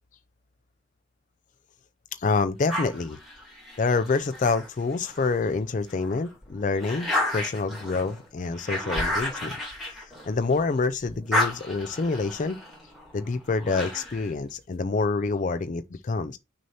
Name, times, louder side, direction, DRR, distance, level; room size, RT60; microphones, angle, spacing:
voice 1, 2.2-3.2 3.8-9.6 9.9-12.6 13.1-16.4, left 4 dB, 40° left, 0.4 m, -27 dB
sound 1, 2.7-5.4 5.9-10.7 11.0-14.3, left 1 dB, ahead, 2.1 m, -32 dB
6.2 x 2.8 x 5.4 m
head